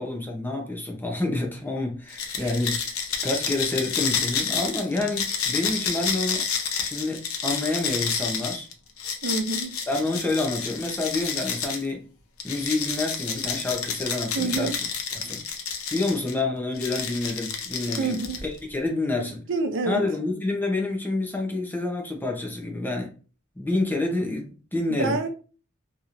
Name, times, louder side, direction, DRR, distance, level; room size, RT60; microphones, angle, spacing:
voice 1, 0.0-2.9 3.2-6.5 6.8-8.7 9.9-12.1 12.4-14.8 15.1-15.4 15.9-19.4 19.9-23.1 23.6-25.2, left 2 dB, 10° left, 0.6 m, -28 dB
sound 1, 2.1-11.9 12.4-16.3 16.8-18.6, left 6 dB, 85° left, 0.6 m, -30 dB
voice 2, 9.2-9.8 14.3-14.7 18.0-18.4 19.2-20.0 24.9-25.3, right 3 dB, 65° right, 0.5 m, -28 dB
2.9 x 2.9 x 2.5 m
head